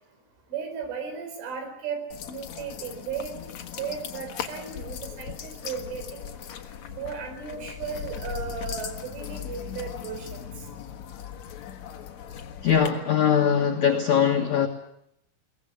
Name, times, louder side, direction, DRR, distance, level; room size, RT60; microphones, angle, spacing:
voice 1, 0.5-2.0 2.3-3.3 3.8-6.3 6.9-10.3, right 6 dB, 70° right, 6.8 m, -35 dB
sound 1, 2.1-12.9, left 9 dB, 85° left, 1.5 m, -38 dB
voice 2, 12.6-14.7, left 8 dB, 65° left, 1.8 m, -21 dB
23.0 x 19.0 x 9.8 m
omnidirectional pair, 5.7 m